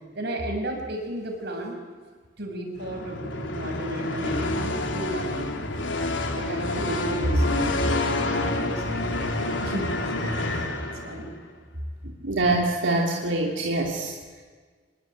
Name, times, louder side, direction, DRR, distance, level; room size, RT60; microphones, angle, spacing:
voice 1, 0.1-1.8 2.4-3.2 3.5-5.5 6.1-9.8 10.1-10.3 11.0-11.3, right 1 dB, 60° right, 2 dB, 6.9 m, -32 dB
sound 1, 2.8-11.4, left 2 dB, 90° left, 3.2 m, -28 dB
voice 2, 12.2-14.1, right 2 dB, 85° right, 0 dB, 3.0 m, -24 dB
26.5 x 22.0 x 9.3 m, 1.5 s
head